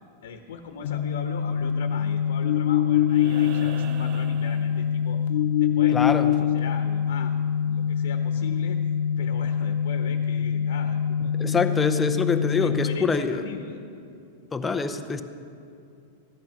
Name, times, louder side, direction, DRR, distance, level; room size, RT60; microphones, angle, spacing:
voice 1, 0.2-5.3 5.6-8.8 9.2-11.9 12.3-13.8, left 6 dB, 80° left, 6 dB, 1.1 m, -39 dB
sound 1, 0.8-13.0, left 8 dB, 65° left, 0.4 m, -24 dB
sound 2, 3.1-5.4 7.2-7.3, right 8 dB, 40° right, 0.7 m, -42 dB
voice 2, 5.9-6.3 11.4-13.4 14.5-15.2, left 4 dB, 10° left, 8 dB, 0.6 m, -25 dB
15.5 x 12.0 x 5.9 m, 2.5 s
supercardioid pair, 165°, 0 cm